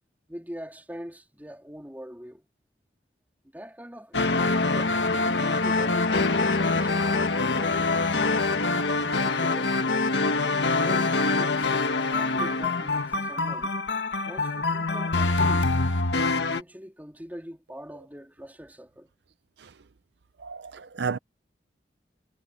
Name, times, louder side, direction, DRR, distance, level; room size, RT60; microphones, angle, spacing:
voice 1, 0.3-2.5 3.5-6.3 6.7-8.1 8.8-10.0 10.8-13.7 14.2-15.8 16.2-19.1, equal, 10° right, 3.5 m, -43 dB
sound 1, 4.1-16.6, left 3 dB, 80° left, 1.5 m, -25 dB
voice 2, 20.4-21.2, right 5 dB, 70° right, 0.6 m, -32 dB
head